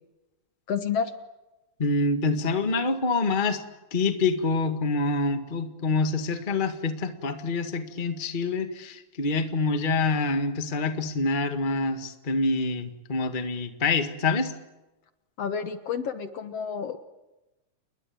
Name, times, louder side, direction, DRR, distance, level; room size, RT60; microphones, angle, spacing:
voice 1, 0.7-1.1 15.4-17.0, left 6 dB, 60° left, 9 dB, 2.1 m, -30 dB
voice 2, 1.8-3.6 3.9-14.5, left 3 dB, 20° left, 7 dB, 1.4 m, -26 dB
29.5 x 21.5 x 8.8 m, 1.0 s
omnidirectional pair, 3.5 m